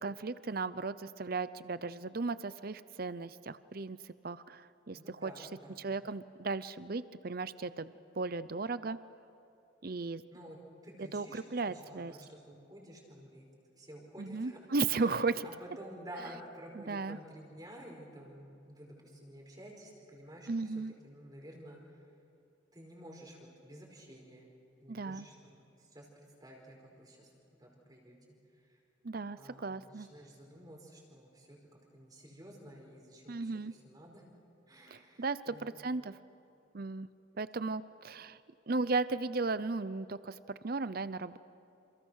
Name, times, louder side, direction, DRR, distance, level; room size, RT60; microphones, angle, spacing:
voice 1, 0.0-5.3 5.8-9.0 9.8-10.2 11.1-12.1 14.2-15.5 16.8-17.2 20.5-20.9 24.9-25.3 29.0-30.1 33.3-33.7 34.9-36.2 36.7-37.1 37.4-38.4 38.7-41.4, right 3 dB, 50° right, 15 dB, 0.7 m, -36 dB
voice 2, 4.9-5.8 10.3-13.5 13.8-14.6 15.0-15.2 15.4-20.7 21.0-21.8 22.7-24.5 24.8-27.3 27.6-28.2 28.7-28.8 29.4-31.6 31.9-34.2 34.7-35.8, right 1 dB, 20° right, -1 dB, 5.0 m, -51 dB
29.0 x 28.5 x 6.4 m, 2.6 s
head